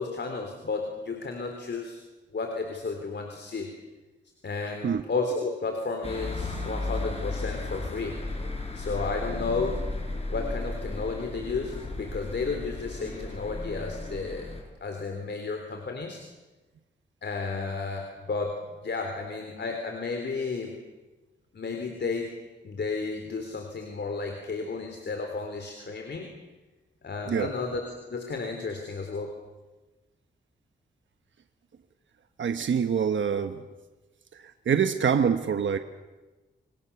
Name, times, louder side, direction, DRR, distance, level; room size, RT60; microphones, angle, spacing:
voice 1, 0.0-2.0 2.3-3.7 4.4-8.2 8.7-9.9 10.3-14.5 14.8-16.2 17.2-18.6 18.8-20.8 21.5-22.3 22.6-26.3 27.0-27.8 28.1-29.3, left 4 dB, 65° left, 4 dB, 3.5 m, -32 dB
sound 1, 6.0-14.6, left 2 dB, 30° left, 6.5 m, -34 dB
voice 2, 32.4-33.6 34.3-35.8, right 7 dB, 80° right, 8 dB, 1.2 m, -25 dB
28.5 x 23.0 x 7.1 m, 1.2 s
cardioid pair, 70°, 19 cm